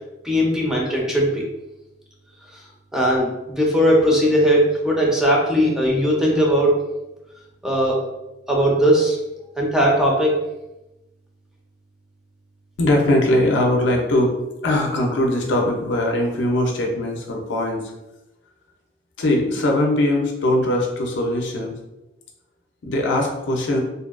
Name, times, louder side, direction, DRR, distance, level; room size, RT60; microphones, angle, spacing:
voice 1, 0.2-1.4 2.5-2.6 2.9-6.8 7.6-8.0 8.5-9.2 9.6-10.4, equal, 5° right, -3 dB, 0.4 m, -18 dB
voice 2, 12.8-14.3 14.6-17.9 19.2-21.7 22.8-23.8, left 1 dB, 70° left, 1 dB, 0.5 m, -20 dB
2.6 x 2.2 x 2.3 m, 0.96 s
head